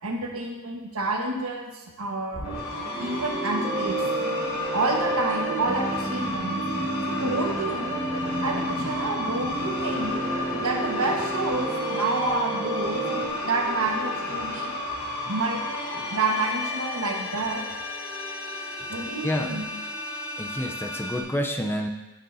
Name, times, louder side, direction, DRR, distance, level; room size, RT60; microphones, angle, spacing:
voice 1, 0.0-2.6 3.0-4.1 4.7-6.6 7.1-8.0 8.4-10.3 10.6-13.0 13.4-14.7 15.3-17.7 18.9-19.7, right 2 dB, 75° right, 1 dB, 1.4 m, -29 dB
sound 1, 2.3-21.2, left 2 dB, 75° left, 2.7 m, -32 dB
sound 2, 2.9-13.3, right 2 dB, 10° right, 1.4 m, -31 dB
voice 2, 19.2-19.6 20.4-21.9, equal, 10° left, 3 dB, 0.6 m, -28 dB
14.5 x 6.5 x 2.7 m, 1.1 s
head